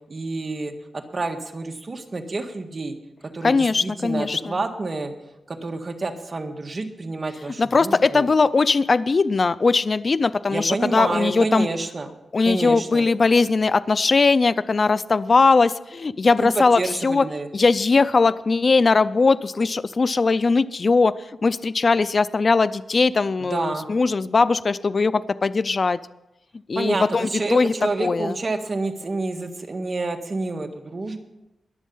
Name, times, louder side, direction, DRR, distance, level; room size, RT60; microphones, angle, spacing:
voice 1, 0.1-2.9 3.3-5.1 5.5-8.3 10.5-12.1 12.4-13.1 16.4-17.5 23.4-23.9 26.8-31.2, right 3 dB, 40° right, 5 dB, 1.6 m, -28 dB
voice 2, 3.4-4.5 7.6-11.7 12.3-17.3 17.5-21.1 21.4-26.0 26.7-27.7 28.0-28.3, left 4 dB, 45° left, 15 dB, 0.5 m, -20 dB
21.5 x 7.3 x 5.5 m, 0.92 s
cardioid pair, 85°, 0 cm